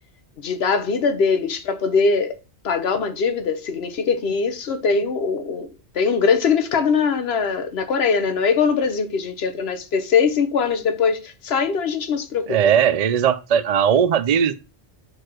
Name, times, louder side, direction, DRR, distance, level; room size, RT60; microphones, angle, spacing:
voice 1, 0.4-2.4 2.6-5.7 5.9-12.6, left 5 dB, 65° left, 1.2 m, -21 dB
voice 2, 12.5-14.5, right 8 dB, 50° right, 0.5 m, -18 dB
4.7 x 4.7 x 6.0 m
omnidirectional pair, 1.1 m